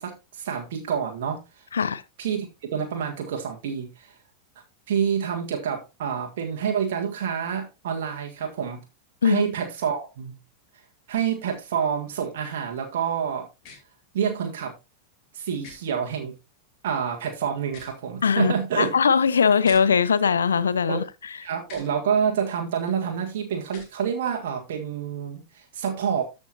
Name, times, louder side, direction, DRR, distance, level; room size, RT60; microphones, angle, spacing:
voice 1, 0.0-1.4 2.2-4.1 4.9-8.8 9.2-10.4 11.1-13.5 14.1-14.7 15.3-16.3 16.8-19.0 20.9-21.0 21.4-26.2, right 7 dB, 55° right, 1.7 m, -28 dB
sound 1, 13.6-13.8 15.6-15.8 17.6-18.0 19.6-19.8 21.6-21.9 23.6-23.9, left 5 dB, 40° left, 2.8 m, -44 dB
voice 2, 18.2-21.0, left 6 dB, 70° left, 0.6 m, -20 dB
13.5 x 5.3 x 2.8 m
figure-of-eight pair, 90°, 0 cm